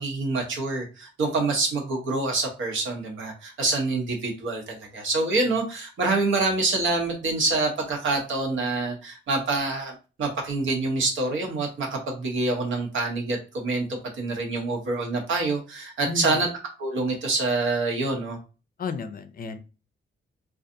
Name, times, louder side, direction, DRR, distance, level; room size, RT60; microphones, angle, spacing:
voice 1, 0.0-16.5 16.8-18.4, right 3 dB, 85° right, 1 dB, 0.9 m, -26 dB
voice 2, 16.1-16.5 18.8-19.6, left 4 dB, 50° left, 9 dB, 0.4 m, -33 dB
2.6 x 2.3 x 2.5 m, 0.32 s
cardioid pair, 80°, 20 cm